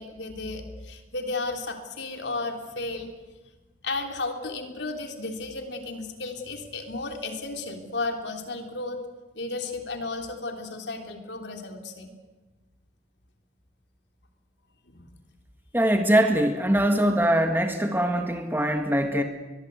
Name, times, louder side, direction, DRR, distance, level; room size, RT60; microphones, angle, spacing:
voice 1, 0.0-3.1 3.8-9.0 9.3-12.1 14.9-15.0, left 3 dB, 80° left, 4 dB, 3.4 m, -33 dB
voice 2, 15.7-19.2, right 1 dB, 10° right, 5 dB, 1.7 m, -22 dB
23.0 x 22.0 x 8.3 m, 1.2 s
head